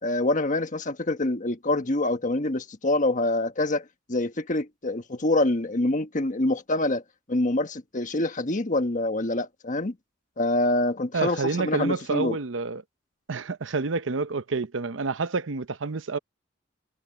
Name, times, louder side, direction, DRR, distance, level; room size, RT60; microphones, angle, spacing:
voice 1, 0.0-7.0 7.3-9.9 10.4-12.4, left 2 dB, 45° left, 1.4 m, -26 dB
voice 2, 11.1-12.8 13.3-16.2, right 4 dB, 85° right, 0.8 m, -28 dB
head